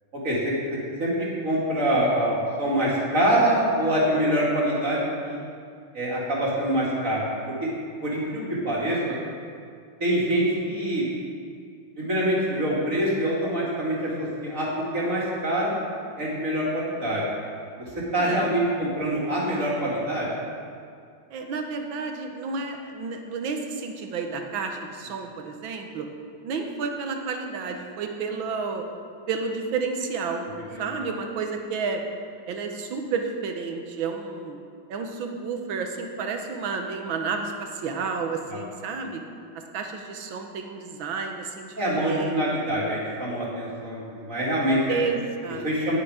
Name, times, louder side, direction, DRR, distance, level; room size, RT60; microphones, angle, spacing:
voice 1, 1.0-5.4 5.9-7.3 7.6-7.7 8.0-9.2 10.0-11.0 12.0-14.7 14.9-15.8 16.2-17.2 18.1-20.3 30.7-30.9 38.5-38.6 41.8-44.8 45.6-46.0, right 1 dB, 40° right, -6 dB, 2.6 m, -25 dB
voice 2, 18.1-18.5 21.3-26.1 26.4-28.8 29.3-30.4 30.8-32.0 32.5-34.6 34.9-39.2 39.5-42.4 44.9-45.6, right 5 dB, 70° right, 4 dB, 1.7 m, -31 dB
10.0 x 9.6 x 4.9 m, 2.2 s
omnidirectional pair, 2.3 m